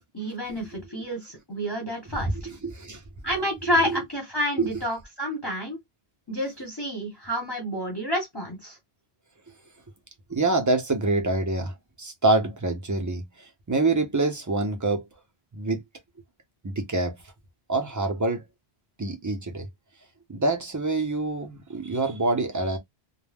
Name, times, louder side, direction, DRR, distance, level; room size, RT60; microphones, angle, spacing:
voice 1, 0.1-2.5 3.2-5.8 6.3-8.8, equal, 25° left, 0.9 m, -29 dB
voice 2, 2.2-3.0 3.7-4.0 4.6-4.7 10.3-15.0 15.5-15.8 16.6-17.2 17.7-18.4 19.0-19.7 20.3-22.8, right 2 dB, 30° right, 0.4 m, -26 dB
2.2 x 2.0 x 3.3 m
omnidirectional pair, 1.1 m